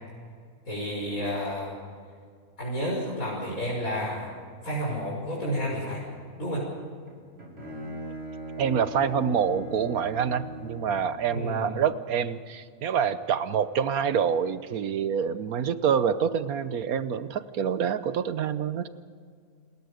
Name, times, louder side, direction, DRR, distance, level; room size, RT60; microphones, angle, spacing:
voice 1, 0.6-1.7 2.6-4.3 4.6-6.0 6.4-6.7 11.3-11.7, equal, 65° left, -5 dB, 6.3 m, -30 dB
Bowed string instrument, 7.1-11.2, right 1 dB, 50° right, 5.5 m, -39 dB
voice 2, 8.6-18.9, right 7 dB, 75° right, 13 dB, 1.4 m, -26 dB
29.0 x 21.0 x 5.2 m, 2.1 s
omnidirectional pair, 1.6 m